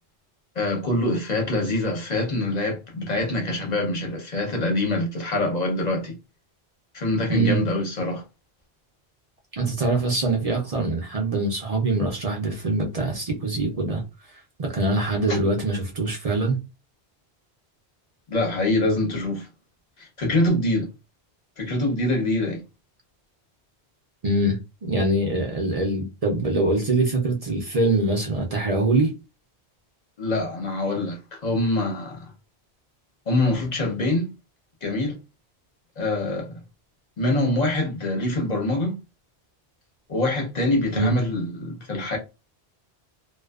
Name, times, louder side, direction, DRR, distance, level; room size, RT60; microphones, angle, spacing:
voice 1, 0.6-6.2 6.9-8.2 15.3-15.4 18.3-19.5 20.0-20.9 21.6-22.6 30.2-32.3 33.3-34.3 34.8-35.1 36.0-36.6 37.2-39.0 40.1-42.2, left 2 dB, 40° left, 0.9 m, -24 dB
voice 2, 9.5-14.0 14.6-16.6 24.2-29.1 40.9-41.1, right 2 dB, 45° right, 0.5 m, -23 dB
2.5 x 2.3 x 2.3 m
omnidirectional pair, 1.1 m